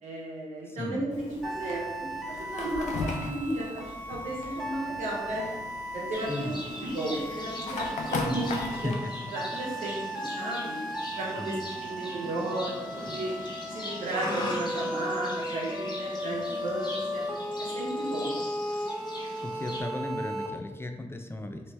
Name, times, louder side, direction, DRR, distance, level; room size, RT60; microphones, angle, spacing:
voice 1, 0.0-5.4 5.9-6.5 6.8-8.9 9.3-10.7 11.2-13.3 13.7-17.2 17.6-18.3, right 1 dB, 90° right, -3 dB, 0.9 m, -34 dB
voice 2, 0.7-1.1 6.3-6.6 8.1-8.5 8.8-9.1 11.4-11.6 19.4-21.7, left 1 dB, 20° left, 5 dB, 0.4 m, -35 dB
Fire, 1.1-9.0, left 3 dB, 85° left, 0.5 m, -38 dB
sound 1, 1.4-20.5, equal, ahead, 0.9 m, -36 dB
Livestock farm animals working animals, 6.1-19.8, left 1 dB, 35° left, 0.8 m, -41 dB
3.0 x 2.9 x 3.2 m, 1.1 s
supercardioid pair, 45°, 12 cm